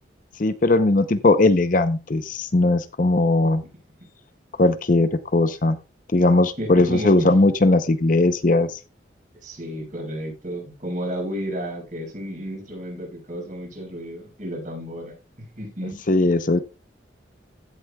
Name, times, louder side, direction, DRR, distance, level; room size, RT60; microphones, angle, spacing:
voice 1, 0.4-3.6 4.6-5.8 6.1-8.8 16.1-16.6, left 2 dB, 45° left, 11 dB, 0.7 m, -19 dB
voice 2, 6.6-7.4 9.4-15.2 15.6-16.0, equal, 45° right, -1 dB, 6.3 m, -32 dB
16.0 x 8.1 x 2.3 m, 0.28 s
head